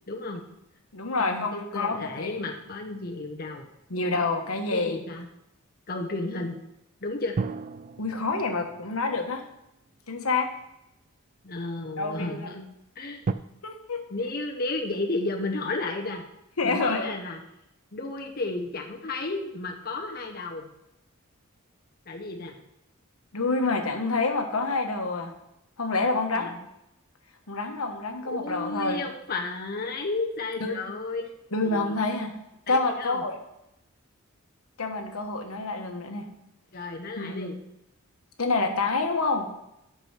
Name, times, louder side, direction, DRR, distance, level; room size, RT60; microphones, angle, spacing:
voice 1, 0.1-0.4 1.2-3.7 4.7-5.3 5.9-6.6 7.0-7.4 11.4-12.6 13.0-13.2 14.1-16.2 16.6-17.4 17.9-20.7 22.1-22.5 26.1-26.6 28.2-31.2 31.6-32.0 32.7-33.2 36.7-37.6, left 2 dB, 45° left, 1 dB, 0.9 m, -33 dB
voice 2, 0.9-2.4 3.9-5.0 8.0-9.4 10.1-10.5 12.0-12.6 13.6-14.0 16.6-17.1 23.3-25.3 25.8-26.5 27.5-29.0 30.6-30.8 31.5-32.3 32.7-33.3 34.8-36.3 37.2-37.6 38.4-39.5, left 3 dB, 85° left, 4 dB, 1.3 m, -27 dB
sound 1, 1.9-4.5 7.3-10.7 11.4-11.5 13.2-13.3, right 4 dB, 35° right, 0.3 m, -37 dB
8.7 x 6.1 x 5.8 m, 0.83 s
head